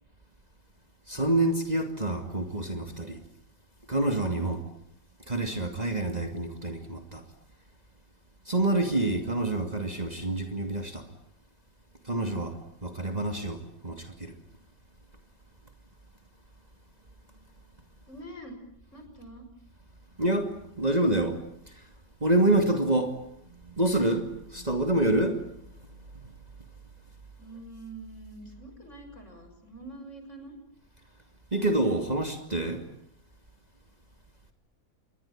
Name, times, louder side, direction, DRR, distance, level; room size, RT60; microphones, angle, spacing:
voice 1, 1.1-3.2 3.9-4.6 5.3-7.2 8.5-11.1 12.0-14.3 20.2-21.4 22.2-25.4 31.5-32.8, right 2 dB, 25° right, 2.7 m, -27 dB
voice 2, 18.1-18.6 18.9-19.5 27.4-30.5, right 2 dB, 45° left, 7.0 m, -45 dB
28.5 x 22.5 x 8.8 m
omnidirectional pair, 1.7 m